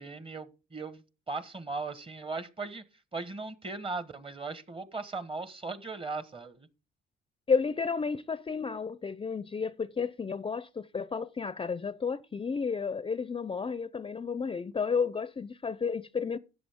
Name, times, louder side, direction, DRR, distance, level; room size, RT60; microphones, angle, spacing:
voice 1, 0.0-2.8 3.1-6.7, right 3 dB, 25° right, 1.4 m, -38 dB
voice 2, 7.5-16.4, left 5 dB, 25° left, 0.5 m, -32 dB
13.5 x 8.2 x 3.6 m
cardioid pair, 90°, 20 cm